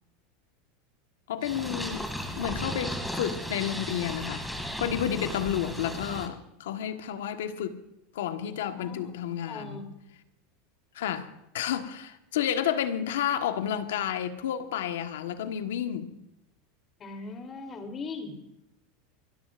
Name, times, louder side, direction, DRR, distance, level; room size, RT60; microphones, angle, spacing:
voice 1, 1.3-2.1 2.4-4.5 4.8-7.8 8.1-9.8 10.9-16.2, left 9 dB, 90° left, 1.4 m, -31 dB
Purr, 1.4-6.3, equal, 5° left, 2.4 m, -35 dB
voice 2, 8.7-9.1 9.5-9.9 17.0-18.4, left 3 dB, 30° left, 3.2 m, -39 dB
28.0 x 13.0 x 2.6 m
supercardioid pair, 125°, 0 cm